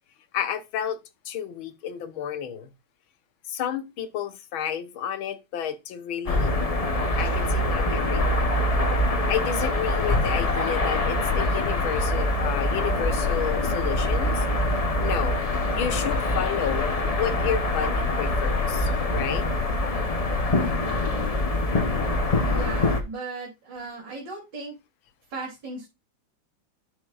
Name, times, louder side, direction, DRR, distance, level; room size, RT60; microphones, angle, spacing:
voice 1, 0.3-1.0 1.2-2.7 3.5-6.5 7.2-8.6 9.3-14.4 15.0-15.4 15.7-16.9 17.2-19.4, left 9 dB, 75° left, 1.7 m, -31 dB
sound 1, 6.3-23.0, left 2 dB, 55° left, 0.4 m, -24 dB
voice 2, 22.5-24.7 25.3-25.9, right 3 dB, 60° right, 3.4 m, -36 dB
11.0 x 6.3 x 2.4 m
omnidirectional pair, 2.2 m